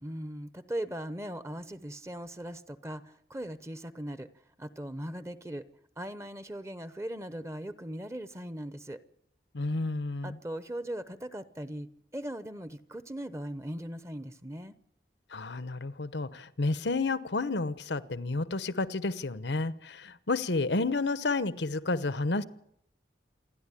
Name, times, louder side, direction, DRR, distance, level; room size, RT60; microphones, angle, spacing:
voice 1, 0.0-4.3 4.6-5.6 6.0-9.0 10.2-14.8, right 1 dB, 15° right, 13 dB, 0.8 m, -39 dB
voice 2, 9.5-10.4 15.3-22.4, left 3 dB, 85° left, 15 dB, 1.0 m, -31 dB
28.0 x 11.0 x 9.9 m, 0.72 s
head